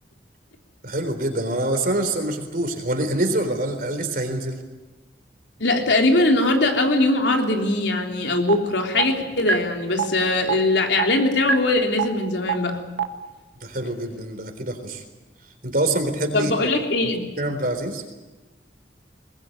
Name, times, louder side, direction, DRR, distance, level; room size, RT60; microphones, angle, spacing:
voice 1, 0.8-4.6 13.6-15.0 15.6-16.7 17.4-18.0, right 1 dB, 55° right, 6 dB, 4.0 m, -25 dB
voice 2, 5.6-12.8 16.3-17.2, left 2 dB, 85° left, 2 dB, 3.4 m, -21 dB
sound 1, 8.5-8.6 9.0-9.1 9.5-9.6 10.0-10.1 10.5-10.6 11.0-11.1 11.5-11.6 12.0-12.1 12.5-12.6 13.0-13.1, right 6 dB, 90° right, 1.7 m, -20 dB
22.0 x 20.5 x 9.2 m, 1.2 s
head